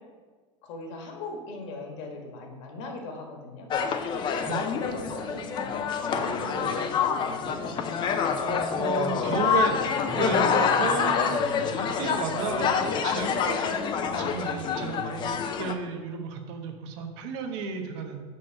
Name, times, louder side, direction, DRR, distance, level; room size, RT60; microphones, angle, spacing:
voice 1, 0.6-3.7 4.3-6.3 6.5-8.2, left 3 dB, 65° left, 2 dB, 1.5 m, -40 dB
sound 1, 3.7-15.7, left 6 dB, 30° left, 0.5 m, -27 dB
sound 2, 4.8-15.3, right 2 dB, 40° right, 1.3 m, -42 dB
voice 2, 8.7-9.8 10.1-11.4 11.8-18.2, right 5 dB, 65° right, 4 dB, 1.0 m, -33 dB
6.2 x 4.5 x 6.3 m, 1.4 s
supercardioid pair, 155°, 16 cm